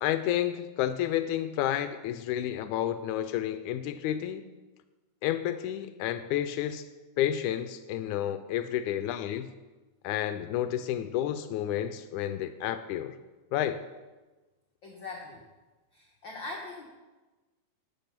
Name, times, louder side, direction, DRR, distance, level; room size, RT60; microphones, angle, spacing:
voice 1, 0.0-4.4 5.2-6.8 7.2-9.5 10.0-13.2 13.5-13.8, left 11 dB, 85° left, 11 dB, 2.0 m, -30 dB
voice 2, 14.8-15.4 15.9-16.8, left 3 dB, 50° left, -1 dB, 1.6 m, -41 dB
12.0 x 8.4 x 5.8 m, 1.2 s
omnidirectional pair, 3.5 m